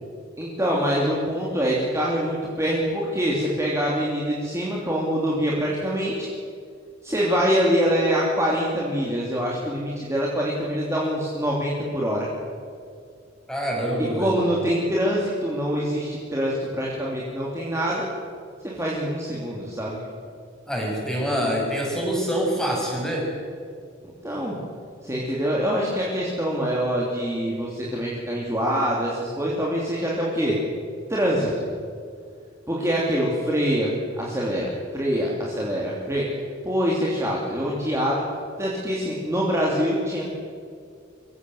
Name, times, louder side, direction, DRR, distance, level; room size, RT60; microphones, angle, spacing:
voice 1, 0.4-6.3 7.0-12.3 14.2-18.1 18.6-20.0 24.2-24.6 25.0-30.6 31.1-31.5 32.7-36.3 36.6-38.2 38.6-40.3, equal, 15° right, -4 dB, 3.0 m, -25 dB
voice 2, 13.5-14.4 20.7-23.3, equal, 5° left, -2 dB, 6.4 m, -25 dB
24.5 x 16.0 x 7.9 m, 2.3 s
head